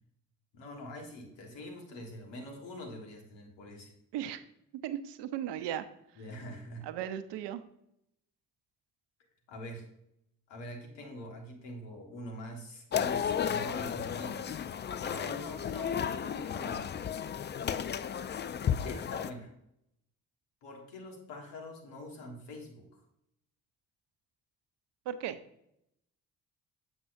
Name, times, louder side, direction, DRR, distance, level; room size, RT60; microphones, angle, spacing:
voice 1, 0.5-3.9 6.2-6.8 9.5-9.9 10.5-14.6 15.0-17.1 18.9-19.5 20.6-23.0, left 1 dB, 75° left, 2 dB, 1.6 m, -44 dB
voice 2, 4.1-4.4 4.8-5.8 6.8-7.6 25.1-25.4, right 10 dB, 65° right, 12 dB, 0.7 m, -36 dB
sound 1, 12.9-19.3, left 8 dB, 25° left, 0.4 m, -33 dB
7.6 x 6.1 x 2.6 m, 0.77 s
hypercardioid pair, 45°, 44 cm